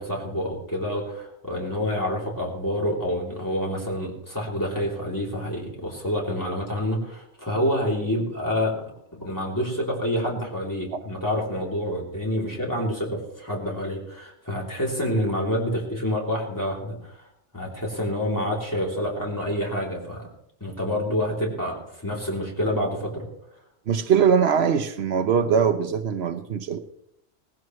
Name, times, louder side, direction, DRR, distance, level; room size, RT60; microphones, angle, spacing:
voice 1, 0.0-8.7 9.1-17.3 17.5-20.2 20.6-23.3, equal, 15° left, -3 dB, 3.3 m, -27 dB
voice 2, 23.9-26.8, right 7 dB, 70° right, 9 dB, 1.0 m, -21 dB
18.0 x 15.5 x 3.2 m, 0.80 s
omnidirectional pair, 1.1 m